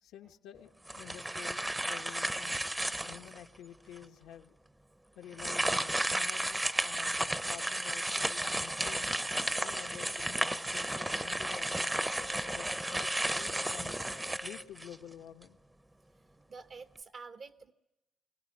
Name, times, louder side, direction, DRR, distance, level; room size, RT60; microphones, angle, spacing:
voice 1, 0.0-2.6 3.1-4.5 5.1-9.1 9.6-13.9 14.4-15.6, left 10 dB, 85° left, 6 dB, 1.1 m, -50 dB
sound 1, 0.9-3.4 4.0-4.1 5.3-15.1, right 1 dB, 10° right, 0.7 m, -33 dB
sound 2, 5.8-5.9 6.8-6.9 7.8-7.9 8.8-8.9 9.8-9.9 10.4-10.5 10.9-11.0 11.4-14.6, left 4 dB, 75° right, 3.3 m, -52 dB
voice 2, 16.5-17.7, right 4 dB, 50° right, 9 dB, 0.9 m, -48 dB
24.0 x 17.5 x 9.8 m, 0.96 s
cardioid pair, 90°, 0 cm